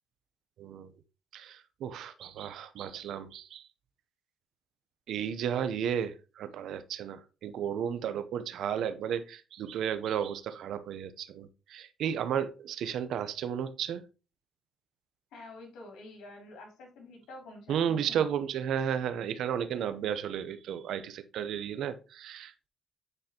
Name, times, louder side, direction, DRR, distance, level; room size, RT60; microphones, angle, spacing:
voice 1, 0.6-0.9 1.3-3.6 5.1-14.0 17.7-22.7, right 8 dB, 75° right, 0.7 m, -33 dB
voice 2, 15.3-18.2, left 2 dB, 85° left, 2.8 m, -48 dB
9.8 x 4.2 x 2.9 m
cardioid pair, 90°, 0 cm